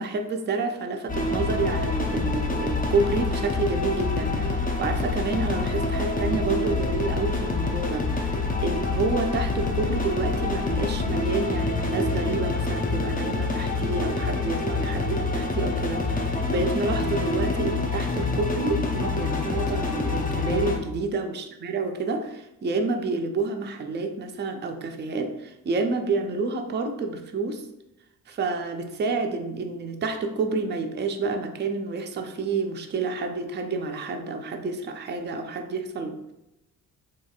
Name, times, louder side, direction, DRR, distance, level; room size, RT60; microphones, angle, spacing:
voice 1, 0.0-27.6 28.3-36.3, right 3 dB, 25° right, 5 dB, 0.4 m, -29 dB
sound 1, 1.1-20.8, left 3 dB, 20° left, 0.5 m, -26 dB
3.1 x 2.6 x 2.3 m, 0.92 s
hypercardioid pair, 40°, 42 cm